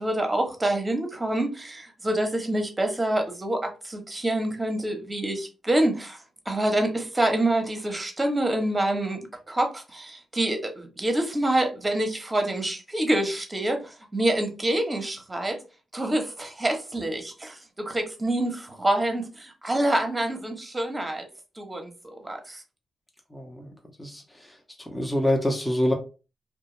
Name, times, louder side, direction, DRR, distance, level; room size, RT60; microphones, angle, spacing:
voice 1, 0.0-6.2 6.5-9.2 9.5-15.6 15.9-21.2 21.6-22.6, right 1 dB, 25° right, 0.9 m, -26 dB
voice 2, 23.3-23.7 24.0-24.2 24.9-25.9, left 1 dB, 10° left, 0.8 m, -25 dB
2.3 x 2.2 x 3.0 m
hypercardioid pair, 45°, 0 cm